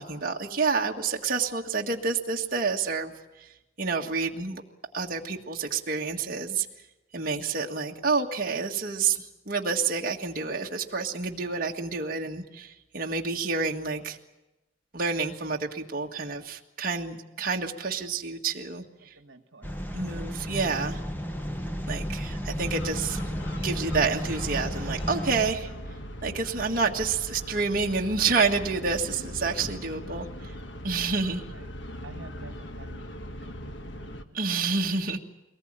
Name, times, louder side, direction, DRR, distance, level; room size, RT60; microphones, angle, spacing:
voice 1, 0.0-3.1 3.4-3.5 3.8-4.6 4.9-6.6 7.1-14.2 14.9-18.8 19.9-21.0 21.9-23.2 23.6-25.7 26.2-30.3 30.8-31.4 34.3-35.2, right 4 dB, 45° right, 0 dB, 1.7 m, -28 dB
voice 2, 19.1-19.7 31.5-31.7 32.0-34.4, right 3 dB, 70° right, 7 dB, 1.6 m, -50 dB
sound 1, 19.6-25.5, equal, 10° left, 1.3 m, -33 dB
sound 2, 22.6-34.2, equal, 65° left, 1.4 m, -40 dB
23.0 x 19.5 x 8.9 m, 0.99 s
head